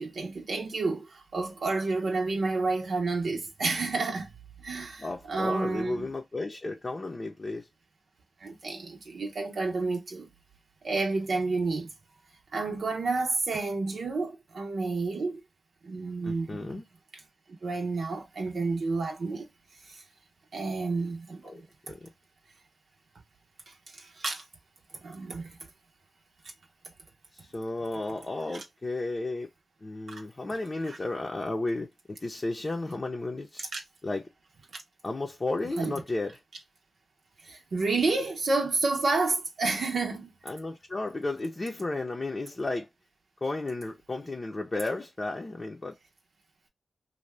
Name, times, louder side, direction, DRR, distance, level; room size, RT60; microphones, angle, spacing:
voice 1, 0.0-4.3 4.6-6.1 8.4-10.3 10.8-11.9 12.5-15.4 15.8-16.8 17.6-19.5 19.9-20.0 20.5-21.5 23.7-24.4 25.0-25.5 30.1-30.2 30.9-31.0 33.7-33.8 34.7-34.8 35.8-35.9 37.4-40.3, right 3 dB, 75° right, 0.7 m, -30 dB
voice 2, 5.0-7.7 16.2-16.8 21.4-21.6 21.9-22.1 27.3-29.5 29.8-33.7 34.0-34.2 35.0-36.4 40.5-42.9 43.4-46.0, left 2 dB, 40° left, 0.6 m, -33 dB
2.7 x 2.2 x 3.2 m
cardioid pair, 45°, 0 cm